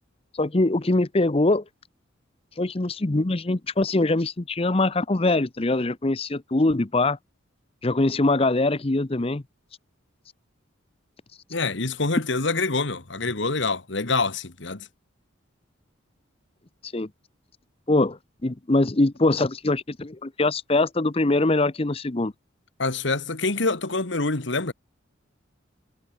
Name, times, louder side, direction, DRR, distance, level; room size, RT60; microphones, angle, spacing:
voice 1, 0.4-1.6 2.6-7.2 7.8-9.4 16.9-17.1 17.9-22.3, left 2 dB, 30° left, 0.8 m, -23 dB
voice 2, 11.5-14.9 22.8-24.7, left 3 dB, 65° left, 1.7 m, -26 dB
head